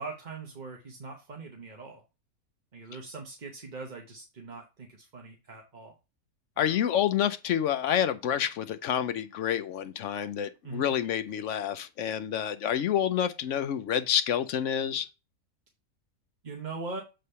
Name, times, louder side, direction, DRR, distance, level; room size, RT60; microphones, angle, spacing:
voice 1, 0.0-2.0 2.7-5.9 6.6-6.8 10.6-10.9 16.4-17.0, right 3 dB, 35° right, 1.0 m, -41 dB
voice 2, 6.6-15.1, left 9 dB, 65° left, 0.9 m, -28 dB
7.8 x 3.4 x 5.5 m
omnidirectional pair, 1.6 m